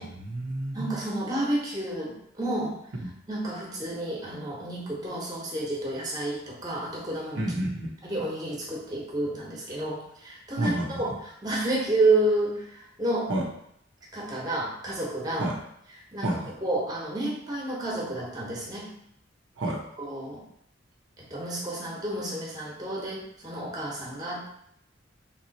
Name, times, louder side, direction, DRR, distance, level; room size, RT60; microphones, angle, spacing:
voice 1, 0.0-0.9 7.3-7.9 10.6-11.1 13.3-13.4 15.4-15.6 16.2-16.5 19.6-19.8, right 1 dB, 80° right, 0 dB, 0.7 m, -29 dB
voice 2, 0.7-2.7 3.3-7.4 8.0-13.3 14.1-15.5 16.1-18.9 20.0-20.4 21.2-24.5, right 2 dB, 20° right, -3 dB, 1.1 m, -30 dB
3.5 x 3.0 x 4.0 m, 0.72 s
head